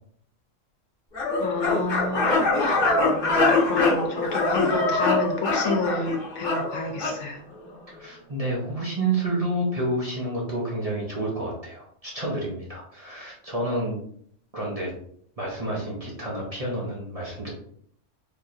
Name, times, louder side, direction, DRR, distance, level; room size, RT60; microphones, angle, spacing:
sound 1, 1.1-7.2, left 3 dB, 40° left, 1.1 m, -23 dB
voice 1, 1.4-2.3 2.5-2.8 3.6-7.4, left 3 dB, 75° left, 3 dB, 1.0 m, -28 dB
voice 2, 7.9-14.0 14.5-14.9 15.4-17.5, right 2 dB, 40° right, -4 dB, 0.6 m, -29 dB
3.6 x 2.8 x 2.4 m, 0.63 s
omnidirectional pair, 1.3 m